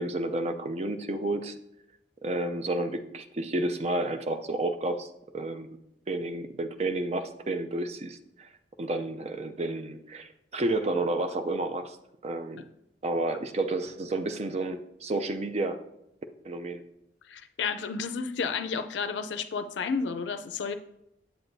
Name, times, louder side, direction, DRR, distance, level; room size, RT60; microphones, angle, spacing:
voice 1, 0.0-1.5 2.2-5.1 5.3-5.7 6.1-8.5 8.8-12.0 12.2-12.7 13.0-15.8 16.4-16.8, right 2 dB, 35° right, 8 dB, 0.4 m, -31 dB
voice 2, 17.3-20.7, left 5 dB, 85° left, 8 dB, 0.4 m, -31 dB
8.0 x 7.7 x 2.6 m, 0.83 s
head